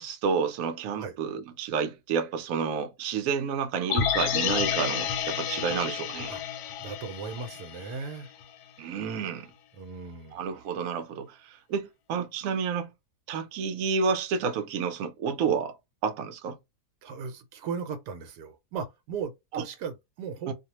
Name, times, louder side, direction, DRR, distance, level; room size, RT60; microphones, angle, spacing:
voice 1, 0.0-6.3 8.8-9.5 10.3-12.9 13.3-15.8 16.0-16.6 19.5-19.6 20.5-20.6, right 6 dB, 65° right, 1.0 m, -30 dB
sound 1, 3.9-8.1 8.4-8.5, left 8 dB, 85° left, 1.2 m, -30 dB
voice 2, 6.8-8.3 9.7-10.6 17.0-20.5, right 6 dB, 85° right, 1.2 m, -37 dB
2.7 x 2.1 x 2.9 m
omnidirectional pair, 1.7 m